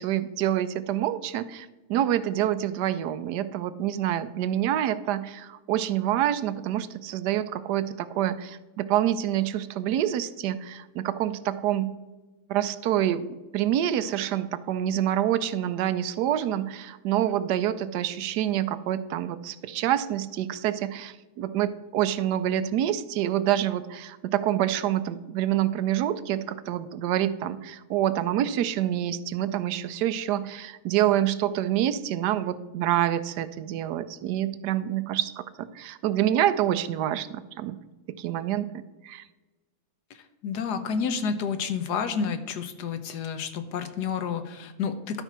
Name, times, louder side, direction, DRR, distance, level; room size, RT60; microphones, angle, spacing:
voice 1, 0.0-11.9 12.5-13.3 13.5-37.8 38.2-39.2, right 11 dB, 80° right, 13 dB, 1.2 m, -27 dB
voice 2, 40.1-45.2, left 6 dB, 80° left, 9 dB, 1.4 m, -30 dB
12.0 x 4.4 x 5.9 m, 1.2 s
omnidirectional pair, 1.7 m